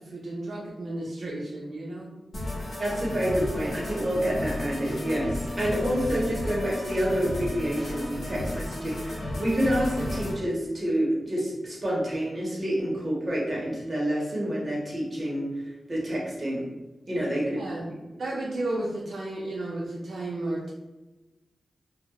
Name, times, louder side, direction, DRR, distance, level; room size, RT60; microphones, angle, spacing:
voice 1, 0.0-2.1 17.6-17.9 18.2-20.7, right 2 dB, 75° right, -4 dB, 0.4 m, -33 dB
sound 1, 2.3-10.3, left 1 dB, 75° left, 0.8 m, -33 dB
voice 2, 2.8-16.7 17.1-17.6, equal, 30° right, -4 dB, 0.7 m, -28 dB
2.2 x 2.0 x 2.8 m, 1.1 s
wide cardioid pair, 110°, 0 cm